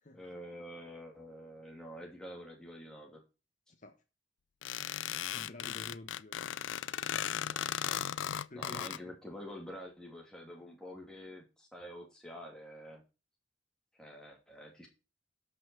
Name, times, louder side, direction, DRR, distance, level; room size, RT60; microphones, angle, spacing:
voice 1, 0.1-3.2 7.5-13.0 14.0-14.9, equal, 5° left, 2.8 m, -48 dB
voice 2, 3.7-4.0 5.3-6.8 8.5-8.9, left 2 dB, 40° left, 1.2 m, -50 dB
sound 1, 4.6-9.0, left 10 dB, 80° left, 0.4 m, -36 dB
12.5 x 5.6 x 4.6 m
head